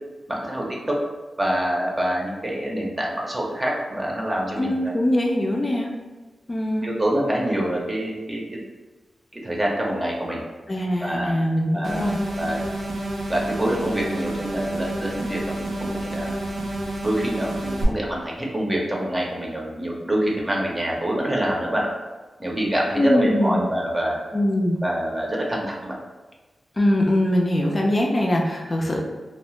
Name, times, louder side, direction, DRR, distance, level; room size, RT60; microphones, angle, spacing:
voice 1, 0.3-1.0 1.4-4.9 6.8-8.6 9.3-10.4 11.0-11.4 11.7-12.6 13.3-16.3 17.0-21.9 22.4-24.2 24.8-25.9, right 1 dB, 25° right, -2 dB, 0.7 m, -26 dB
voice 2, 4.6-5.9 6.5-6.9 10.7-12.2 23.0-23.6 24.3-24.8 26.8-29.0, left 1 dB, 35° left, -1 dB, 0.4 m, -22 dB
sound 1, 11.8-17.8, right 1 dB, 85° right, 0.5 m, -29 dB
2.7 x 2.1 x 3.0 m, 1.2 s
wide cardioid pair, 85°, 0 cm